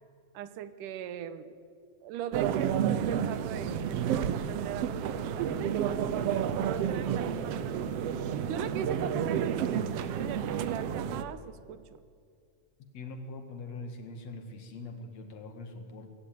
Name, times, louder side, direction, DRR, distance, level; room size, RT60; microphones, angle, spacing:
voice 1, 0.3-1.6 2.0-5.8 6.5-7.9 8.5-11.8, right 9 dB, 85° right, 13 dB, 2.5 m, -39 dB
sound 1, 2.3-11.2, right 8 dB, 70° right, 1.6 m, -30 dB
voice 2, 12.9-16.1, left 2 dB, 60° left, 6 dB, 2.9 m, -42 dB
20.5 x 17.0 x 9.3 m, 2.3 s
omnidirectional pair, 3.6 m